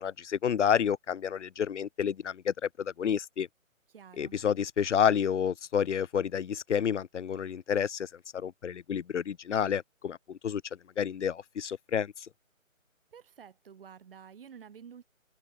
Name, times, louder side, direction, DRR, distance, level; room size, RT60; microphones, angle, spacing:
voice 1, 0.0-3.5 4.2-10.6 11.0-12.3, left 8 dB, 60° left, 0.5 m, -30 dB
voice 2, 3.9-4.3 13.1-15.0, right 7 dB, 40° right, 4.0 m, -50 dB
figure-of-eight pair, 155°, 41 cm